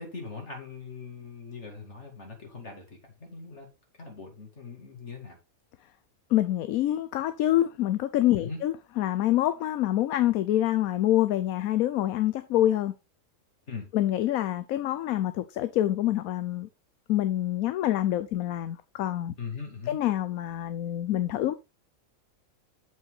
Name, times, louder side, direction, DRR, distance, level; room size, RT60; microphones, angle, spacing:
voice 1, 0.0-3.7 4.0-5.4 8.4-8.6 13.7-13.9 19.4-20.0, left 4 dB, 55° left, 2.7 m, -41 dB
voice 2, 6.3-12.9 13.9-16.7 17.1-19.3 19.9-21.5, left 13 dB, 80° left, 1.1 m, -26 dB
7.4 x 5.8 x 3.9 m
omnidirectional pair, 1.5 m